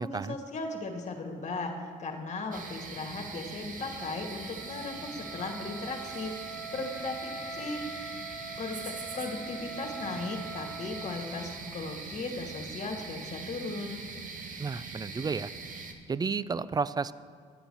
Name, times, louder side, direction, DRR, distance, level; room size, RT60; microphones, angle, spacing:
voice 1, 0.0-7.8 8.6-14.0, left 3 dB, 40° left, 2 dB, 2.1 m, -37 dB
sound 1, 2.5-15.9, right 4 dB, 45° right, 1.4 m, -42 dB
Wind instrument woodwind instrument, 3.8-11.8, right 3 dB, ahead, 1.0 m, -43 dB
voice 2, 14.6-15.5 16.1-17.1, right 5 dB, 20° right, 17 dB, 0.4 m, -31 dB
10.5 x 7.9 x 6.9 m, 2.1 s
supercardioid pair, 70°, 19 cm